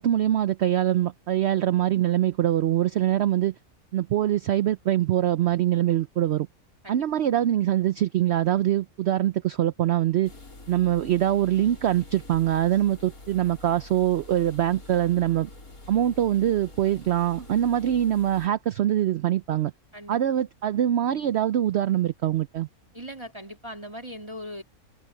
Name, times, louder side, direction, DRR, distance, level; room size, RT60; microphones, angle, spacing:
voice 1, 0.0-3.5 3.9-6.5 6.9-10.3 10.7-15.5 15.9-19.7 20.1-22.7, right 12 dB, 60° right, 0.7 m, -23 dB
sound 1, 10.2-18.5, left 2 dB, 85° left, 5.2 m, -46 dB
voice 2, 22.9-24.6, equal, 20° right, 3.0 m, -39 dB
omnidirectional pair, 1.5 m